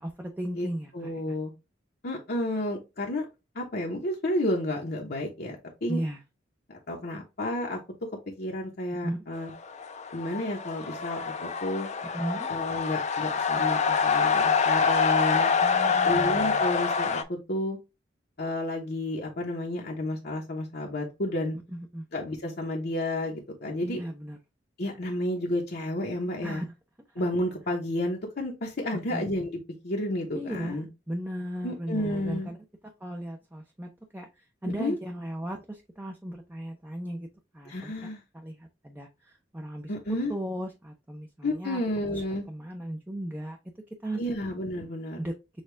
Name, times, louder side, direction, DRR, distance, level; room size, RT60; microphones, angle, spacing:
voice 1, 0.0-1.1 5.9-6.2 9.0-9.2 12.1-12.5 15.6-16.7 21.7-22.0 23.8-24.4 26.4-26.7 29.1-29.2 30.3-30.8 31.1-32.6 33.0-34.3 34.6-37.3 37.5-37.9 38.3-39.9 40.3-41.8 42.1-42.2 42.5-43.6 44.0-44.2 45.2-45.3, right 1 dB, 10° right, 2 dB, 0.6 m, -36 dB
voice 2, 0.9-1.5 2.0-3.2 3.5-6.0 6.7-7.8 8.4-9.5 10.1-11.3 11.6-11.9 12.5-15.5 16.0-17.8 18.4-21.6 22.1-24.0 24.8-26.6 27.1-30.9 31.6-32.5 34.8-35.0 37.7-38.2 39.9-40.3 41.4-42.4 44.1-45.2, left 1 dB, 55° left, -1 dB, 0.9 m, -31 dB
sound 1, 9.5-17.2, left 5 dB, 40° left, 0.6 m, -26 dB
6.5 x 2.4 x 3.3 m, 0.26 s
head